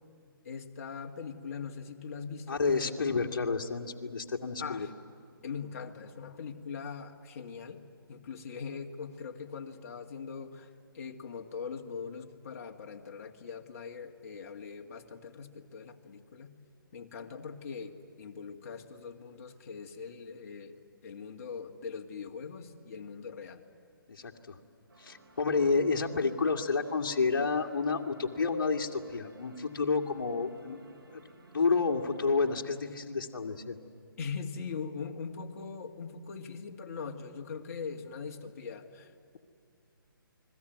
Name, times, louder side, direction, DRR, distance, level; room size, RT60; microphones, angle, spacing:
voice 1, 0.4-2.6 4.6-4.9 5.4-7.8 8.1-10.7 10.9-16.5 16.9-23.6 34.2-39.4, left 5 dB, 40° left, 3 dB, 2.1 m, -41 dB
voice 2, 2.5-4.9 24.1-24.6 25.0-30.8 31.1-31.2 31.5-33.8, left 4 dB, 60° left, 1 dB, 2.2 m, -30 dB
sound 1, 24.9-32.8, right 3 dB, 80° right, 6.1 m, -59 dB
29.5 x 21.5 x 9.4 m, 2.3 s
hypercardioid pair, 160°, 12 cm